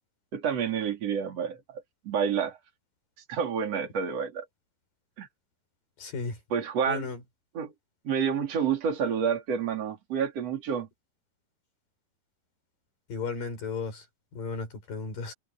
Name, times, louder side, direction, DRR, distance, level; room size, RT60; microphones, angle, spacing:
voice 1, 0.3-2.6 3.3-4.5 5.2-5.3 6.5-7.0 7.6-7.7 8.0-10.9, right 7 dB, 45° right, 4.3 m, -29 dB
voice 2, 6.0-6.4 6.9-7.2 13.1-14.1 14.3-15.3, left 4 dB, 70° left, 8.5 m, -34 dB
omnidirectional pair, 4.1 m